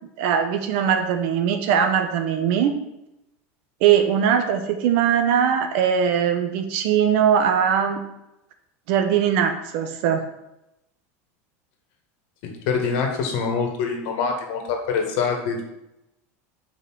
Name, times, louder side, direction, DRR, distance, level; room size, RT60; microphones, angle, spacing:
voice 1, 0.2-2.7 3.8-8.0 8.9-10.2, right 8 dB, 65° right, 7 dB, 1.0 m, -20 dB
voice 2, 12.4-15.6, left 5 dB, 65° left, 3 dB, 1.8 m, -25 dB
5.5 x 4.8 x 6.3 m, 0.87 s
supercardioid pair, 125°, 7 cm